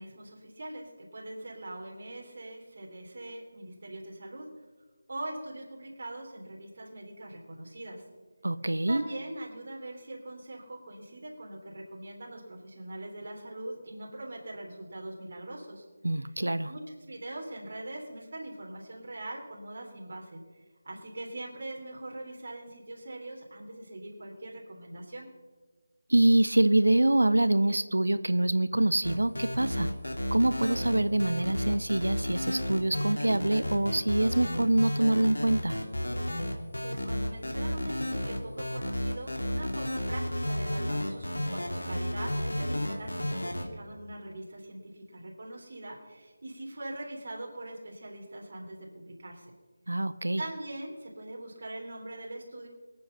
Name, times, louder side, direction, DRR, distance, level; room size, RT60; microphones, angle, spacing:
voice 1, 0.0-4.5 5.1-8.0 8.9-15.8 16.7-16.8 17.1-20.4 20.8-25.3 36.4-49.5 50.4-52.7, right 1 dB, 45° right, -1 dB, 3.4 m, -42 dB
voice 2, 8.4-9.0 16.0-16.7 26.1-29.9 30.3-35.8 49.9-50.4, right 1 dB, 70° right, 14 dB, 0.8 m, -25 dB
sound 1, 29.0-43.7, left 1 dB, 70° left, 2.7 m, -32 dB
23.5 x 9.0 x 5.8 m, 1.4 s
figure-of-eight pair, 160°, 0 cm